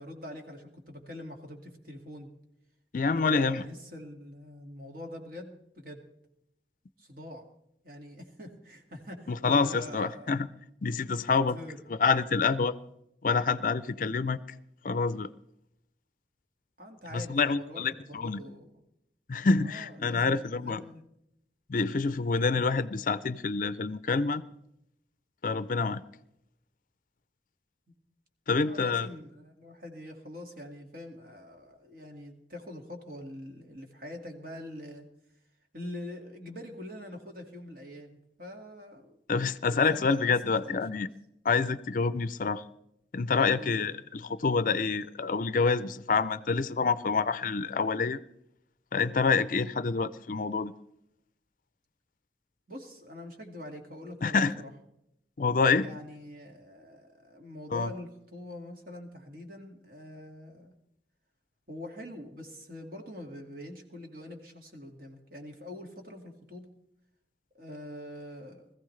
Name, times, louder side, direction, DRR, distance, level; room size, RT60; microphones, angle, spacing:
voice 1, 0.0-2.3 3.1-6.0 7.0-7.4 7.8-10.4 11.0-11.1 11.5-11.8 16.8-18.8 19.6-21.1 22.5-22.7 28.5-35.1 35.7-39.2 39.9-40.3 40.6-41.0 43.5-43.9 52.7-54.7 55.8-60.7 61.7-66.7 67.5-68.7, left 1 dB, 50° right, 3 dB, 2.0 m, -44 dB
voice 2, 2.9-3.6 9.3-10.5 10.8-11.6 11.9-12.8 13.2-14.4 14.8-15.3 17.1-18.4 19.3-20.8 21.7-24.4 25.4-26.0 28.5-29.1 39.3-41.1 41.4-42.6 43.1-48.2 48.9-50.7 54.2-54.5 55.4-55.9 57.7-57.9, left 4 dB, 50° left, 15 dB, 0.4 m, -27 dB
21.0 x 14.5 x 3.2 m, 0.80 s
head